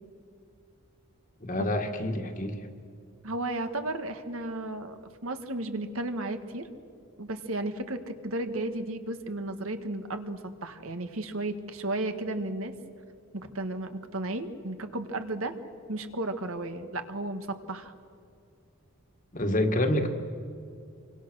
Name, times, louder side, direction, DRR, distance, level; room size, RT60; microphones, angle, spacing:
voice 1, 1.4-2.7 19.3-20.1, left 1 dB, 40° left, 5 dB, 1.9 m, -27 dB
voice 2, 3.2-6.7 7.2-12.7 13.3-15.5 15.9-17.9, right 2 dB, 75° right, 8 dB, 1.7 m, -34 dB
27.5 x 24.0 x 6.4 m, 2.4 s
head